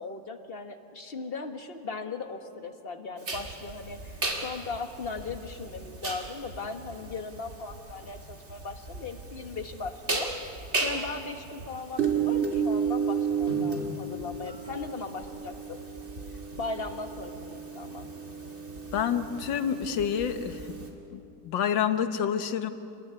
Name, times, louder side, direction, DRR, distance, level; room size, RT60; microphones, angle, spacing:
voice 1, 0.0-10.3 10.8-15.8 16.6-18.1, left 3 dB, 35° left, 6 dB, 1.5 m, -38 dB
sound 1, 3.2-20.9, right 5 dB, 35° right, 2.6 m, -33 dB
voice 2, 18.9-20.6 21.1-22.7, left 8 dB, 90° left, 9 dB, 1.8 m, -28 dB
27.5 x 21.0 x 9.6 m, 2.8 s
omnidirectional pair, 2.0 m